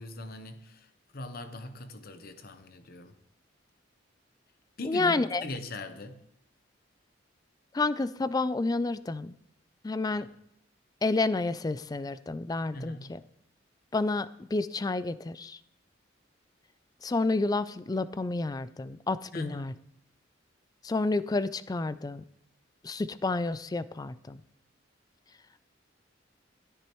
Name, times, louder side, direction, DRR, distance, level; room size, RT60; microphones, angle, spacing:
voice 1, 0.0-3.1 4.8-6.2 10.1-10.3 12.7-13.1 19.3-19.7, left 2 dB, 50° left, 0.9 m, -41 dB
voice 2, 4.9-5.4 7.7-9.3 9.8-10.3 11.0-13.2 13.9-15.6 17.0-19.7 20.8-22.2 22.8-24.4, left 3 dB, 20° left, 0.3 m, -30 dB
13.0 x 10.0 x 3.1 m
head